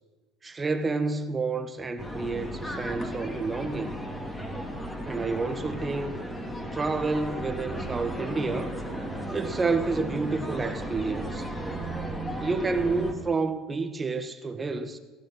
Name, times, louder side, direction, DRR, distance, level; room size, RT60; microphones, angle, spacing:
voice 1, 0.4-4.0 5.1-6.2 6.7-8.7 9.3-11.5 12.4-15.0, right 3 dB, 25° right, 1.6 m, -29 dB
sound 1, 2.0-13.1, equal, 10° left, 2.9 m, -35 dB
sound 2, 7.7-13.4, right 12 dB, 55° right, 0.6 m, -42 dB
19.0 x 11.5 x 6.4 m
supercardioid pair, 85°, 0 cm